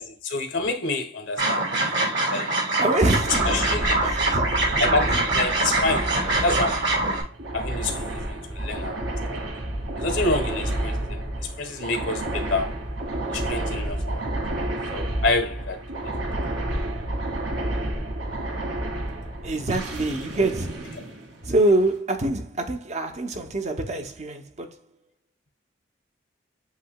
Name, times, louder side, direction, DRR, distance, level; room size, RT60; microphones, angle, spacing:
voice 1, 0.0-1.7 2.3-2.5 3.4-4.4 4.8-6.9 7.5-9.5 10.0-12.8 13.3-14.3 14.9-15.8, left 3 dB, 80° left, 1.3 m, -28 dB
sound 1, 1.4-7.2, right 2 dB, 65° right, 1.7 m, -24 dB
voice 2, 2.8-4.6 5.1-5.2 19.4-20.9 21.4-24.8, right 2 dB, 35° right, 0.7 m, -25 dB
sound 2, 2.9-21.8, right 1 dB, 90° right, 2.7 m, -30 dB
8.1 x 2.8 x 2.2 m
head